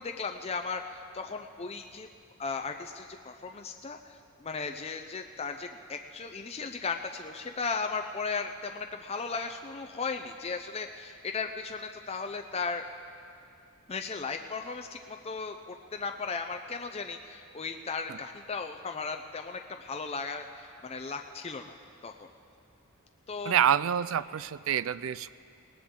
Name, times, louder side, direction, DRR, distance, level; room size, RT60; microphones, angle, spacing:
voice 1, 0.0-2.1 2.4-12.8 13.9-21.8 22.0-22.3 23.3-23.6, left 4 dB, 30° left, 5 dB, 0.5 m, -36 dB
voice 2, 23.5-25.3, right 9 dB, 70° right, 18 dB, 0.4 m, -27 dB
20.0 x 18.5 x 3.8 m, 2.4 s
head